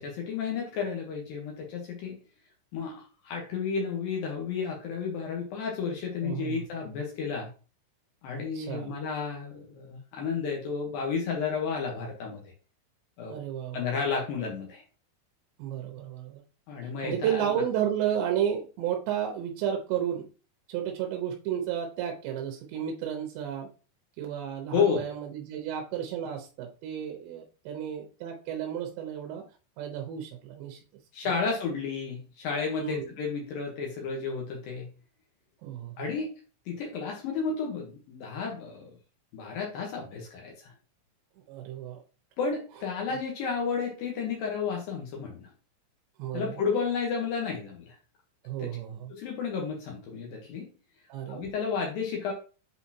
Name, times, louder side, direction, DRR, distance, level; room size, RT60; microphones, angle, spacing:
voice 1, 0.0-2.2 2.7-7.5 8.2-12.5 13.2-13.3 13.7-14.8 16.7-17.6 24.7-25.0 31.1-34.9 36.0-36.3 36.7-38.9 39.3-40.7 42.4-45.5 46.3-48.0 48.6-48.7 49.1-50.7 51.3-52.3, left 5 dB, 85° left, 0 dB, 2.0 m, -32 dB
voice 2, 6.2-6.7 8.5-9.0 13.3-13.9 15.6-16.4 17.0-20.3 20.7-23.7 24.2-29.4 29.8-30.8 32.7-33.1 35.6-36.1 41.5-42.0 46.2-46.5 48.4-49.1 51.1-51.5, right 9 dB, 75° right, 3 dB, 2.7 m, -32 dB
8.0 x 4.2 x 2.8 m, 0.35 s
omnidirectional pair, 5.8 m